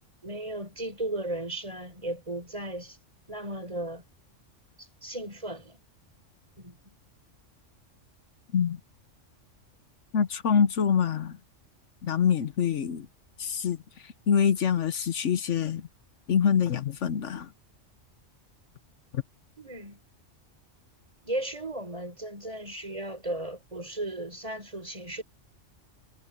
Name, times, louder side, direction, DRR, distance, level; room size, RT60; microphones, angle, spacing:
voice 1, 0.2-3.0 3.3-4.0 4.8-5.8 6.6-6.8 19.6-20.0 21.2-25.2, right 1 dB, 25° right, 5.0 m, -35 dB
voice 2, 10.1-11.4 12.0-13.1 13.4-13.8 14.3-15.8 16.3-17.5 19.1-19.2, left 7 dB, 75° left, 1.2 m, -25 dB
omnidirectional pair, 1.3 m